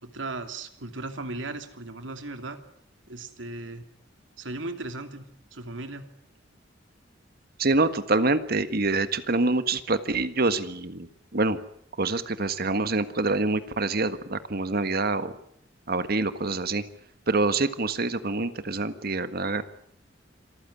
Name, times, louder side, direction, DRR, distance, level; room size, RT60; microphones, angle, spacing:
voice 1, 0.0-2.6 3.1-3.8 4.4-5.3 5.5-6.1, right 2 dB, 80° right, 7 dB, 2.7 m, -36 dB
voice 2, 7.6-11.6 12.0-15.3 15.9-16.8 17.3-19.6, right 3 dB, 55° right, 11 dB, 1.6 m, -26 dB
26.5 x 15.0 x 10.0 m, 0.69 s
head